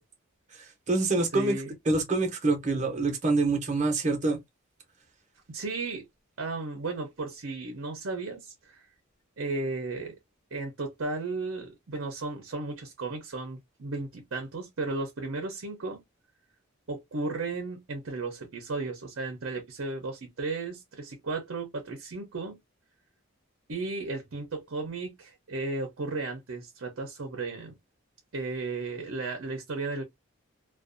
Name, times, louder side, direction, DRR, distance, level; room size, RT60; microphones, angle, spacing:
voice 1, 0.6-1.5 1.9-4.4, right 3 dB, 35° right, 0.7 m, -26 dB
voice 2, 1.3-1.7 5.5-6.0 6.4-8.9 9.4-10.2 10.5-16.0 16.9-22.6 23.7-27.7 28.3-30.0, right 3 dB, 65° right, 0.6 m, -34 dB
2.5 x 2.2 x 2.5 m
head